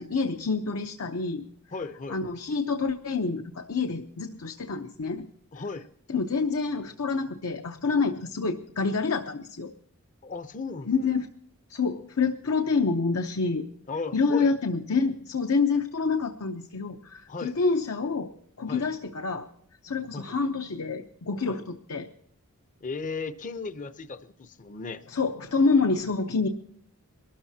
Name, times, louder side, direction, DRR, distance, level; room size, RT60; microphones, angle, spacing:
voice 1, 0.0-1.4 2.1-5.3 6.1-9.7 10.8-11.3 11.7-13.7 14.1-18.3 18.6-19.5 19.8-22.1 25.1-26.5, left 4 dB, 75° left, 6 dB, 0.8 m, -27 dB
voice 2, 1.7-2.2 5.5-5.9 10.2-10.9 13.9-14.5 17.3-17.5 18.7-18.8 20.1-20.3 21.5-21.6 22.8-25.0, left 4 dB, 35° left, 11 dB, 0.6 m, -35 dB
23.0 x 13.0 x 2.8 m, 0.66 s
head